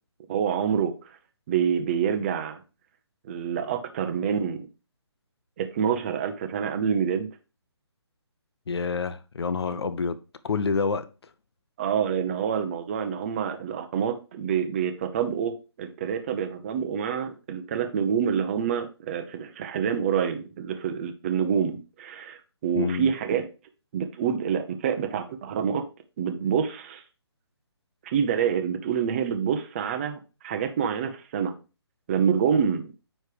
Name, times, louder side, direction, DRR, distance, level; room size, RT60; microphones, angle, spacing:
voice 1, 0.3-1.0 1.5-2.6 3.3-4.7 5.6-7.3 11.8-23.5 23.9-25.8 26.2-27.0 28.0-31.5 32.1-32.9, right 7 dB, 25° right, 0.8 m, -27 dB
voice 2, 8.7-10.2 10.4-11.1 22.7-23.1, left 5 dB, 65° left, 0.7 m, -27 dB
9.5 x 3.3 x 4.9 m
hypercardioid pair, 155°, 14 cm